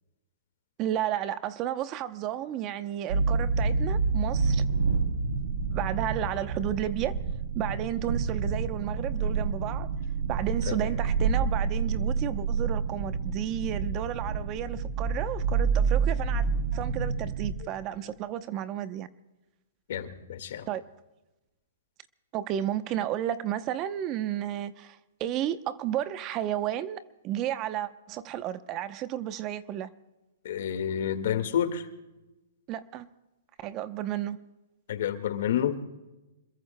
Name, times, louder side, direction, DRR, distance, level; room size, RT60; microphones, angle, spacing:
voice 1, 0.8-4.6 5.7-7.2 7.5-9.9 10.3-16.5 16.7-19.1 20.7-20.9 22.3-29.9 32.7-33.1 33.6-34.4, right 11 dB, 30° right, 0.7 m, -32 dB
sound 1, 3.1-17.5, right 5 dB, 70° right, 3.1 m, -28 dB
voice 2, 19.9-20.7 30.4-31.8 34.9-35.8, left 9 dB, 65° left, 1.8 m, -29 dB
27.0 x 21.5 x 2.2 m
hypercardioid pair, 140°, 0 cm